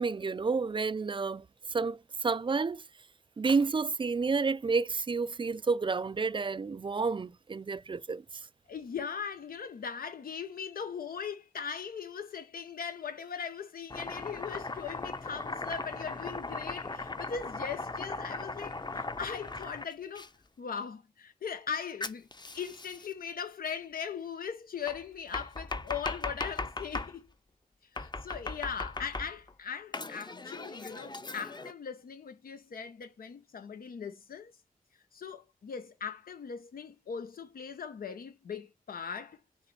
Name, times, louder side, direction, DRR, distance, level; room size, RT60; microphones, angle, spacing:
voice 1, 0.0-2.8 3.4-8.2, right 4 dB, 35° right, 0.4 m, -30 dB
voice 2, 8.7-20.3 20.6-27.3 27.9-34.5 35.1-39.4, left 7 dB, 85° left, 0.8 m, -39 dB
Domestic sounds home sounds, 13.9-20.3 22.0-23.1 24.9-27.1 28.0-29.5 29.9-31.7, left 3 dB, 30° left, 0.8 m, -38 dB
6.6 x 3.2 x 4.6 m
cardioid pair, 65°, 15 cm